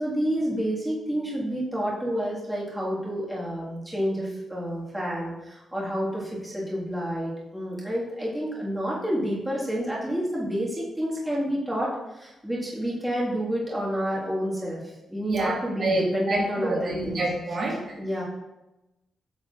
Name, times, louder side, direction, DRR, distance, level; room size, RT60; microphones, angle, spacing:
voice 1, 0.0-14.8 15.1-17.2 18.0-18.2, equal, 5° right, -6 dB, 1.7 m, -29 dB
voice 2, 15.3-17.8, right 2 dB, 50° right, -3 dB, 1.8 m, -28 dB
8.5 x 6.3 x 2.5 m, 0.98 s
wide cardioid pair, 140°, 0 cm